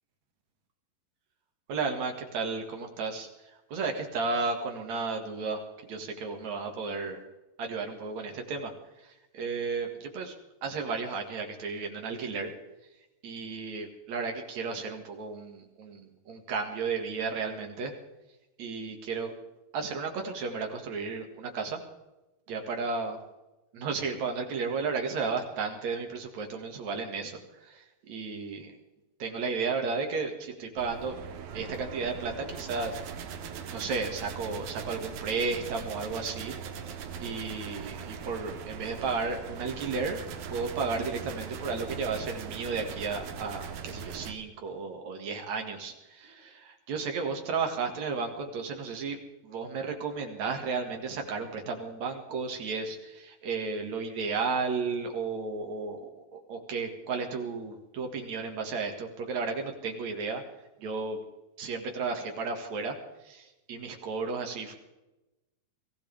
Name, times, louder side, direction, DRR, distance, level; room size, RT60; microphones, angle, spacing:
voice 1, 1.7-3.3 3.7-7.2 7.6-8.7 9.0-10.4 10.6-12.5 13.2-17.9 18.6-19.3 19.7-21.8 22.5-23.2 23.7-28.8 29.2-31.2 31.5-33.0 33.7-36.6 37.2-40.2 40.5-49.2 49.4-60.4 60.8-61.2 61.6-63.0 63.2-64.7, right 4 dB, 55° right, 4 dB, 3.0 m, -33 dB
sound 1, 30.8-44.4, right 6 dB, 75° right, 3.2 m, -40 dB
23.5 x 16.0 x 3.5 m, 1.0 s
omnidirectional pair, 4.3 m